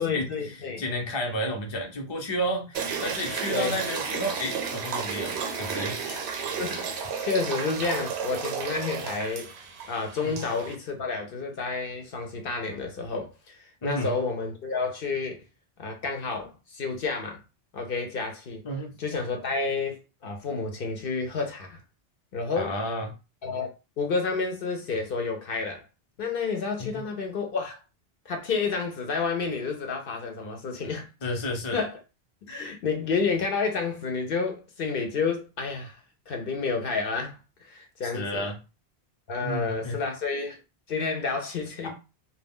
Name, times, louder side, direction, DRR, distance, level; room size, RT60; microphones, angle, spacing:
voice 1, 0.0-0.8 3.5-3.8 6.0-6.2 6.6-9.5 9.9-15.4 15.8-17.4 17.7-18.6 19.0-21.8 22.3-22.8 23.4-23.7 24.0-25.8 26.2-27.8 28.3-31.1 31.7-32.0 32.5-36.0 36.3-37.4 37.7-38.5 39.3-40.6 40.9-41.9, left 4 dB, 65° left, 0.8 m, -30 dB
voice 2, 0.8-6.0 10.2-10.4 13.8-14.1 18.6-18.9 22.6-23.1 26.8-26.9 31.2-31.8 38.1-38.6 39.4-40.0 41.8-41.9, equal, 35° left, 0.6 m, -31 dB
sound 1, 2.7-10.7, right 6 dB, 85° right, 0.8 m, -32 dB
2.2 x 2.2 x 3.5 m
omnidirectional pair, 1.1 m